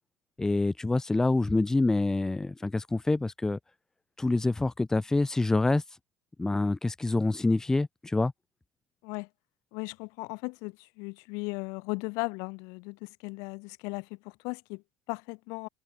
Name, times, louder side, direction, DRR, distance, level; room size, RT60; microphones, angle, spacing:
voice 1, 0.4-3.6 4.2-5.8 6.4-8.3, left 2 dB, 10° left, 1.4 m, -26 dB
voice 2, 9.7-15.7, left 31 dB, 65° left, 5.3 m, -37 dB
supercardioid pair, 135°, 6 cm